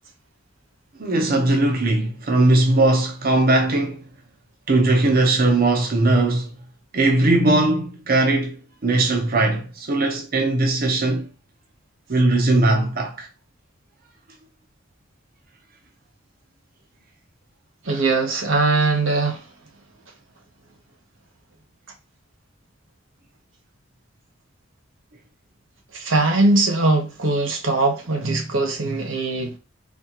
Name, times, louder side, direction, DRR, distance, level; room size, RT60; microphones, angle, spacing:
voice 1, 1.0-4.0 4.7-6.5 6.9-8.6 8.8-11.3 12.1-13.3 17.9-18.0, right 2 dB, 50° right, 0.8 m, -19 dB
voice 2, 17.8-19.4 25.9-29.6, right 2 dB, 90° right, 1.1 m, -21 dB
4.2 x 2.9 x 2.9 m
head